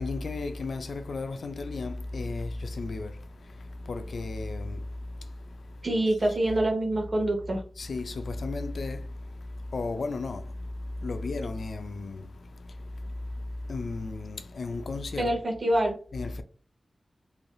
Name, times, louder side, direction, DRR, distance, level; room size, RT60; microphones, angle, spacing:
voice 1, 0.0-6.1 7.8-15.3 16.1-16.4, left 3 dB, 80° left, 0.3 m, -35 dB
voice 2, 5.8-7.6 15.2-16.0, right 1 dB, 50° right, 0.9 m, -25 dB
3.2 x 2.6 x 2.2 m
wide cardioid pair, 115°, 0 cm